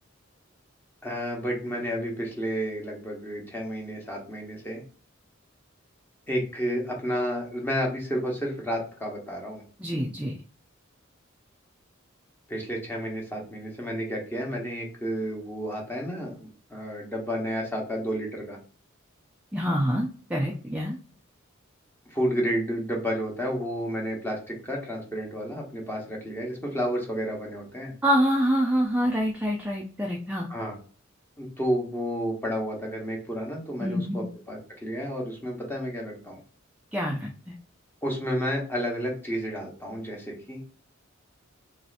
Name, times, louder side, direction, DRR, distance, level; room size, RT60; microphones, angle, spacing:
voice 1, 1.0-4.8 6.3-9.6 12.5-18.6 22.1-27.9 30.5-30.8 31.4-36.4 38.0-40.6, equal, 10° left, -1 dB, 0.9 m, -31 dB
voice 2, 9.8-10.4 19.5-21.0 28.0-30.5 33.8-34.3 36.9-37.5, equal, 5° right, 0 dB, 0.4 m, -26 dB
3.0 x 2.7 x 2.5 m, 0.40 s
head